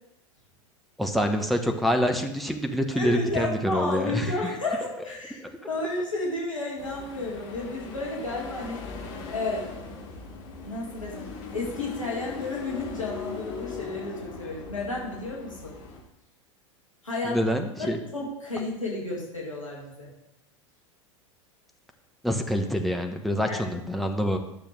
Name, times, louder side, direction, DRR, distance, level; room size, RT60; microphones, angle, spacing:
voice 1, 1.0-4.3 17.2-18.0 22.2-24.4, equal, ahead, 5 dB, 1.0 m, -26 dB
voice 2, 2.9-8.9 9.3-9.7 10.6-15.8 17.0-17.4 17.8-20.1 23.5-23.6, left 2 dB, 85° left, -3 dB, 2.1 m, -32 dB
sound 1, 6.8-16.0, left 4 dB, 45° left, 2.2 m, -40 dB
11.5 x 6.8 x 3.3 m, 0.84 s
figure-of-eight pair, 85°, 16 cm